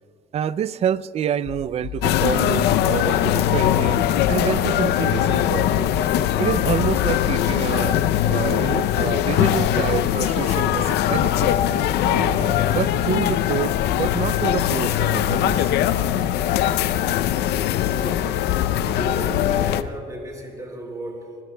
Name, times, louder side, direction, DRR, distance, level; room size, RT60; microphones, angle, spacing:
voice 1, 0.3-5.9 6.4-11.5 12.0-15.7, right 9 dB, 40° right, 18 dB, 0.4 m, -28 dB
sound 1, 1.4-19.9, left 8 dB, 60° left, 1.1 m, -36 dB
sound 2, 2.0-19.8, left 11 dB, 80° left, 0.6 m, -21 dB
voice 2, 17.8-21.4, right 1 dB, 20° right, 0 dB, 4.8 m, -35 dB
26.0 x 21.0 x 2.2 m, 2.3 s
cardioid pair, 110°, 17 cm